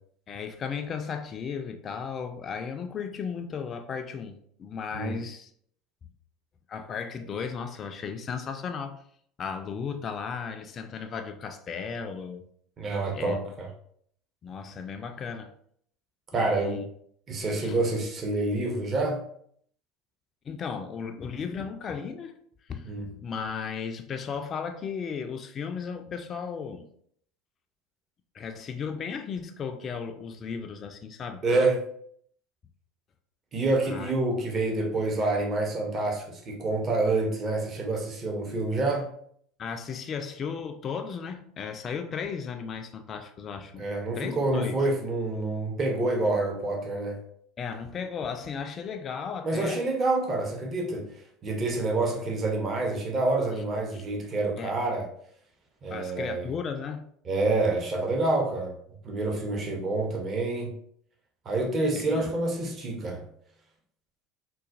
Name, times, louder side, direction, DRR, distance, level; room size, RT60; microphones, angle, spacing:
voice 1, 0.3-5.5 6.7-9.0 9.4-12.5 13.1-13.4 14.4-15.5 16.3-16.8 17.6-17.8 20.5-22.3 22.7-26.9 28.3-31.4 33.8-34.1 39.6-43.9 44.1-44.9 47.6-49.8 53.9-54.0 54.6-54.8 55.9-57.1 62.0-62.2, left 6 dB, 40° left, 0.3 m, -35 dB
voice 2, 12.8-13.7 16.3-16.8 17.3-19.2 22.8-23.1 31.4-31.8 33.5-39.1 43.8-47.2 49.4-55.1 55.8-56.5 57.3-58.7 59.0-60.7 61.5-63.2, right 2 dB, 40° right, 0.7 m, -27 dB
3.9 x 2.2 x 2.5 m
hypercardioid pair, 75°, 0 cm